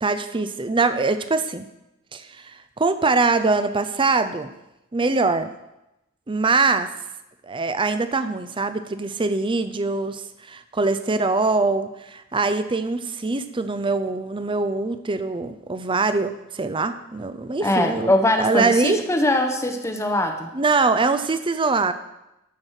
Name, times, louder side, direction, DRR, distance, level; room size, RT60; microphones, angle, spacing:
voice 1, 0.0-1.7 2.1-4.5 4.9-5.5 6.3-6.9 7.4-18.1 18.4-19.0 20.5-21.9, right 3 dB, 25° right, 11 dB, 0.6 m, -23 dB
voice 2, 17.6-20.5, left 1 dB, 15° left, 5 dB, 0.8 m, -22 dB
14.0 x 6.1 x 4.9 m, 0.92 s
head